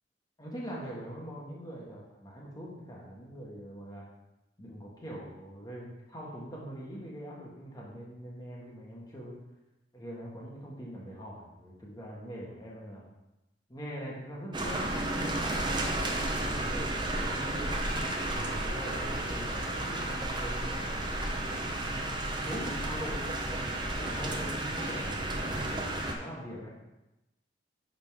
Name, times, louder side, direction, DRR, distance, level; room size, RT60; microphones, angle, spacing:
voice 1, 0.4-4.1 4.6-9.4 9.9-13.1 13.7-17.7 18.3-21.7 22.4-23.3 24.0-26.7, equal, 20° left, -4 dB, 1.5 m, -43 dB
sound 1, 14.5-26.1, right 1 dB, 25° right, 0.8 m, -32 dB
10.5 x 4.0 x 3.6 m, 0.96 s
head